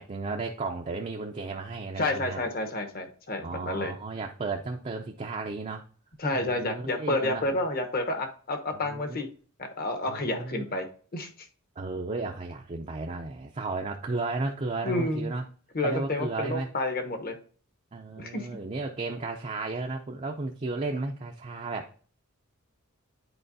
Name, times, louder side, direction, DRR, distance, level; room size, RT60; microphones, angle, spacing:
voice 1, 0.0-2.4 3.4-5.8 6.3-7.6 8.7-9.2 10.1-10.7 11.8-15.4 15.8-16.7 17.9-21.9, right 3 dB, 30° right, 2 dB, 0.5 m, -34 dB
voice 2, 2.0-3.9 6.2-9.3 9.6-10.9 11.1-11.3 14.8-15.3 15.7-17.4 18.2-18.5, left 2 dB, 45° left, 6 dB, 1.0 m, -30 dB
10.0 x 4.5 x 2.7 m, 0.43 s
head